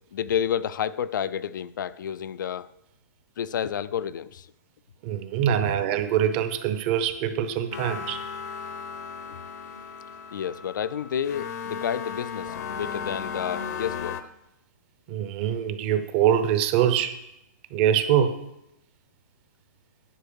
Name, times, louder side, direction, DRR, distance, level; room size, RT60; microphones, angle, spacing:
voice 1, 0.1-2.7 3.4-4.5 10.3-14.2, left 9 dB, 85° left, 0.4 m, -30 dB
voice 2, 5.0-8.2 15.1-17.1 17.7-18.4, right 9 dB, 35° right, 0.7 m, -24 dB
sound 1, 7.7-14.2, left 6 dB, 60° left, 0.7 m, -35 dB
10.0 x 4.5 x 7.0 m
hypercardioid pair, 155°, 10 cm